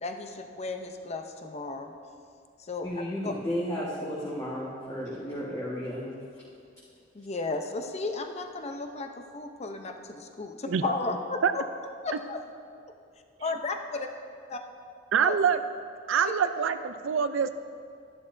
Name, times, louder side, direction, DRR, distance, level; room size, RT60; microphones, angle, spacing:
voice 1, 0.0-1.9 2.6-3.3 7.1-11.6 12.0-12.4 13.4-14.1 14.5-14.6 15.2-15.4, left 3 dB, 35° left, 5 dB, 0.7 m, -34 dB
voice 2, 2.8-6.1, equal, 20° left, -8 dB, 1.5 m, -33 dB
voice 3, 15.1-15.6 16.1-17.5, right 7 dB, 80° right, 10 dB, 0.4 m, -25 dB
12.5 x 11.0 x 2.6 m, 2.4 s
head